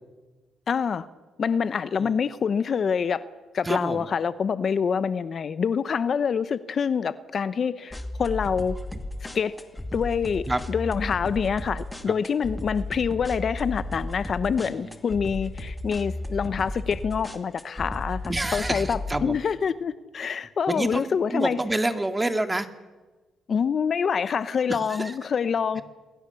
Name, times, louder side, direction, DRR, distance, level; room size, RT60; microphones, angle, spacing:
voice 1, 0.7-1.1 1.4-3.2 3.5-8.8 9.3-9.5 9.9-18.2 18.5-21.6 23.5-25.8, left 6 dB, 50° left, 13 dB, 0.8 m, -26 dB
voice 2, 3.6-4.1 10.5-10.6 14.6-15.0 18.3-19.4 20.7-22.7 24.7-25.1, right 2 dB, 15° right, 7 dB, 2.0 m, -28 dB
sound 1, 7.9-19.3, left 1 dB, 10° left, 2.3 m, -34 dB
28.0 x 21.0 x 7.0 m, 1.3 s
cardioid pair, 90°, 0 cm